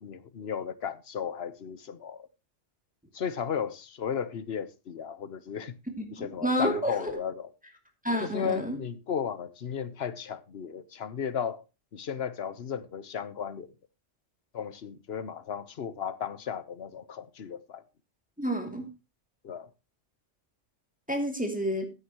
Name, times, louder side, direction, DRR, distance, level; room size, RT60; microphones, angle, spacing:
voice 1, 0.0-2.3 3.1-5.7 6.1-7.5 8.2-11.6 11.9-13.7 14.5-17.8 19.4-19.7, left 7 dB, 60° left, 1.1 m, -35 dB
voice 2, 6.2-7.1 8.0-8.8 18.4-18.9 21.1-21.9, equal, 5° right, 2.5 m, -29 dB
15.0 x 9.7 x 3.0 m
omnidirectional pair, 1.3 m